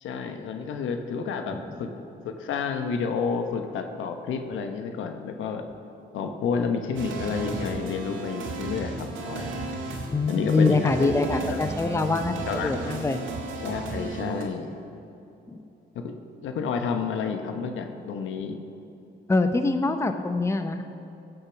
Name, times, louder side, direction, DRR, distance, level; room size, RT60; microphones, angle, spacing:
voice 1, 0.0-5.7 6.1-9.5 10.3-11.2 11.5-11.6 12.5-12.7 13.6-14.7 15.9-18.6, left 5 dB, 80° left, 6 dB, 1.1 m, -30 dB
sound 1, 7.0-14.4, right 3 dB, 75° right, 2.2 m, -34 dB
voice 2, 10.1-13.2 15.5-15.6 19.3-20.8, left 3 dB, 15° left, 7 dB, 0.7 m, -24 dB
16.0 x 6.9 x 5.8 m, 2.8 s
cardioid pair, 90°, 20 cm